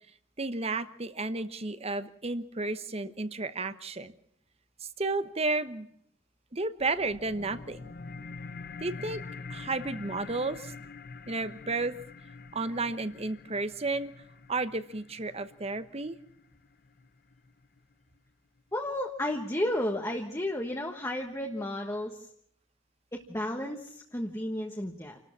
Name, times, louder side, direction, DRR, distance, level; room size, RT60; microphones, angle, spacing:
voice 1, 0.4-4.1 5.0-5.9 6.5-7.9 8.8-9.2 9.5-10.7 11.3-12.0 12.5-14.1 14.5-16.2, right 3 dB, 30° right, 12 dB, 1.0 m, -32 dB
sound 1, 6.8-17.8, left 4 dB, 50° left, 0.8 m, -45 dB
voice 2, 18.7-22.3 23.1-25.2, left 1 dB, 15° left, 1 dB, 1.4 m, -33 dB
28.0 x 13.0 x 7.3 m, 0.70 s
head